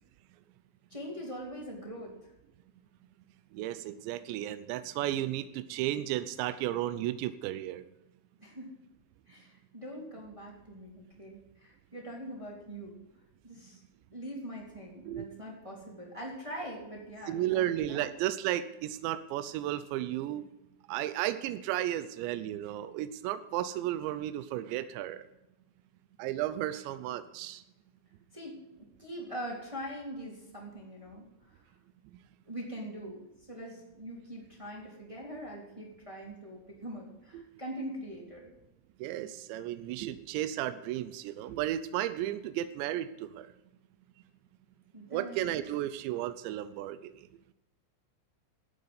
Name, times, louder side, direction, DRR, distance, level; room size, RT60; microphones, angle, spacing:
voice 1, 0.9-2.3 8.4-8.7 9.3-13.0 13.4-13.8 14.1-18.0 28.3-31.6 32.5-38.5 44.9-45.5, equal, 10° right, -2 dB, 2.4 m, -43 dB
voice 2, 3.5-7.8 15.1-15.3 17.3-20.5 20.9-25.2 26.2-27.6 37.3-37.4 39.0-43.5 45.1-47.3, right 13 dB, 80° right, 12 dB, 2.6 m, -34 dB
12.0 x 8.6 x 9.5 m, 0.94 s
omnidirectional pair, 5.9 m